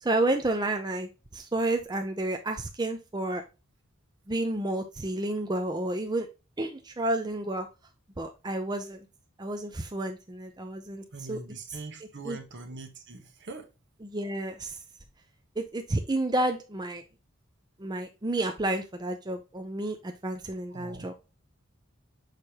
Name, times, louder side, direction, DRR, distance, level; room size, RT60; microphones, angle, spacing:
voice 1, 0.0-3.4 4.3-6.3 6.6-7.7 8.2-9.0 9.4-11.4 12.2-12.4 14.0-14.8 15.6-17.0 17.8-21.1, right 2 dB, 20° right, 0.7 m, -30 dB
voice 2, 11.1-13.7 20.7-21.1, right 3 dB, 60° right, 1.2 m, -42 dB
6.6 x 5.0 x 2.9 m
head